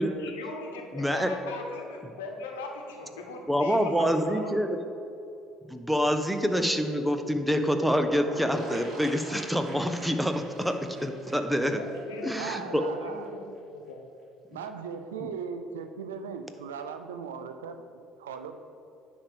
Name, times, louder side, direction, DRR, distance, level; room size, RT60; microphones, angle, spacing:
voice 1, 0.2-4.7 11.7-12.4 12.7-13.4 13.7-14.0, left 3 dB, 75° left, 2 dB, 1.1 m, -40 dB
voice 2, 0.9-1.3 3.5-4.8 5.7-11.8 12.2-12.8 15.2-15.3, equal, 5° right, 7 dB, 0.7 m, -26 dB
sound 1, 8.0-12.6 12.9-13.0 13.2-13.3, right 2 dB, 45° right, 2.0 m, -43 dB
voice 3, 12.3-13.3 14.5-18.6, right 6 dB, 80° right, 8 dB, 0.5 m, -38 dB
9.8 x 3.5 x 6.8 m, 2.7 s
hypercardioid pair, 55°, 0 cm